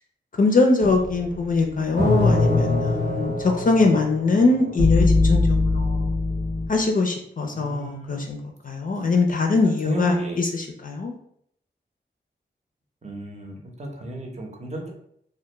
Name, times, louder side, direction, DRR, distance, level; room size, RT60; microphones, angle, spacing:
voice 1, 0.4-6.1 6.7-8.4 8.6-11.1, left 3 dB, 45° left, 2 dB, 0.4 m, -22 dB
sound 1, 0.8-6.7, left 2 dB, 70° right, 1.0 m, -22 dB
voice 2, 7.5-8.2 9.6-10.4 13.0-14.9, right 2 dB, 35° right, 0 dB, 0.7 m, -34 dB
2.2 x 2.1 x 3.0 m, 0.68 s
cardioid pair, 50°, 19 cm